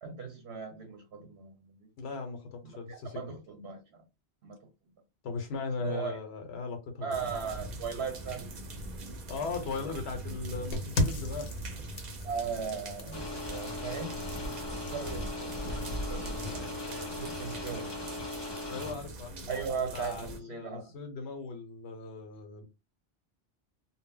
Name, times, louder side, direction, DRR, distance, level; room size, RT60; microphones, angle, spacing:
voice 1, 0.0-1.9 2.9-3.8 4.4-4.6 5.8-6.2 7.0-8.5 12.2-14.1 14.9-17.9 19.5-20.9, right 6 dB, 90° right, 1.0 m, -38 dB
voice 2, 2.0-3.4 5.2-7.2 9.3-11.5 18.7-22.6, left 4 dB, 85° left, 1.0 m, -38 dB
sound 1, 7.1-20.4, right 1 dB, 50° right, 0.6 m, -42 dB
sound 2, 10.7-16.5, left 1 dB, 70° left, 0.8 m, -37 dB
sound 3, 13.1-18.9, left 2 dB, 30° left, 0.7 m, -39 dB
2.1 x 2.0 x 3.6 m
omnidirectional pair, 1.1 m